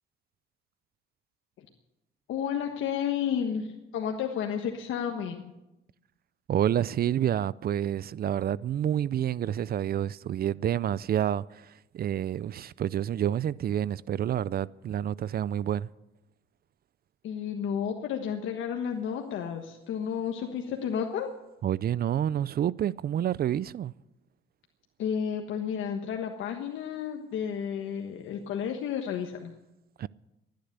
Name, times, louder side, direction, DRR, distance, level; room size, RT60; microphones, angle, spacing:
voice 1, 2.3-5.5 17.2-21.3 25.0-29.5, left 8 dB, 80° left, 1.4 m, -32 dB
voice 2, 6.5-15.9 21.6-23.9 30.0-30.1, right 10 dB, 50° right, 0.4 m, -28 dB
17.0 x 10.5 x 8.1 m
cardioid pair, 90°, 20 cm